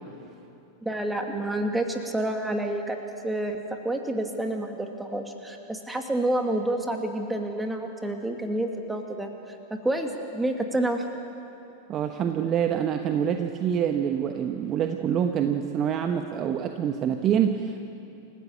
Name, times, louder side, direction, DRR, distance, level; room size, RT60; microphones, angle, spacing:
voice 1, 0.8-3.0 3.2-9.3 9.7-11.0, right 1 dB, 5° right, 4 dB, 2.4 m, -28 dB
voice 2, 11.9-17.9, right 8 dB, 30° right, 6 dB, 1.2 m, -26 dB
28.5 x 16.0 x 8.7 m, 2.9 s
figure-of-eight pair, 90°, 0 cm